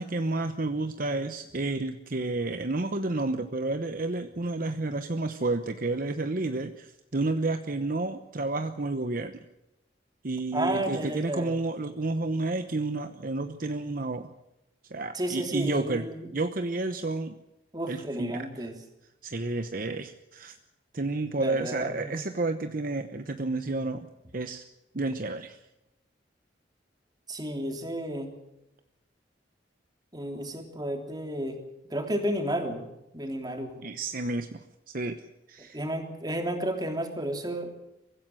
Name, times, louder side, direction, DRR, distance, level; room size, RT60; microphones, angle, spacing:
voice 1, 0.0-9.3 10.2-14.3 14.9-16.0 16.3-17.3 17.9-18.7 19.2-20.6 20.9-24.1 24.3-24.6 24.9-25.6 33.8-34.6 34.9-35.2 35.5-35.8, right 2 dB, 50° right, 8 dB, 1.0 m, -30 dB
voice 2, 10.5-11.5 15.1-16.3 17.7-18.7 21.4-22.2 27.3-28.3 30.1-31.6 31.9-32.8 33.1-33.8 35.7-37.7, right 1 dB, 25° right, 4 dB, 3.3 m, -32 dB
24.0 x 16.0 x 7.9 m, 0.89 s
head